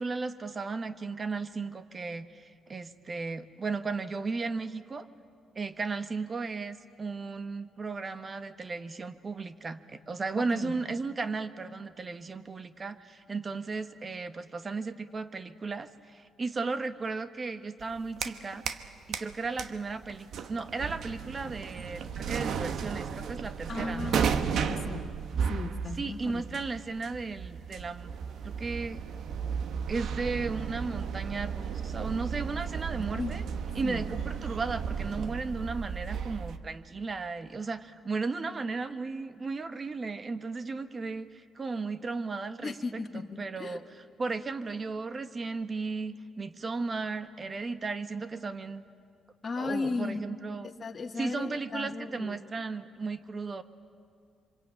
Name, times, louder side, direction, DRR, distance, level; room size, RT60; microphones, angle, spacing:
voice 1, 0.0-5.1 5.5-18.6 19.1-24.2 26.0-28.1 28.4-29.0 29.9-33.4 33.7-48.9 49.6-50.7 51.2-53.6, right 4 dB, 35° right, 11 dB, 1.2 m, -35 dB
voice 2, 10.3-10.7 23.7-25.1 25.5-26.4 33.0-33.4 33.8-34.0 42.6-43.8 49.4-50.2 50.8-52.4, left 4 dB, 40° left, 2 dB, 1.7 m, -36 dB
sound 1, 17.8-18.9 19.1-36.6, right 7 dB, 70° right, 1.1 m, -34 dB
26.5 x 25.0 x 9.0 m, 2.4 s
cardioid pair, 90°, 0 cm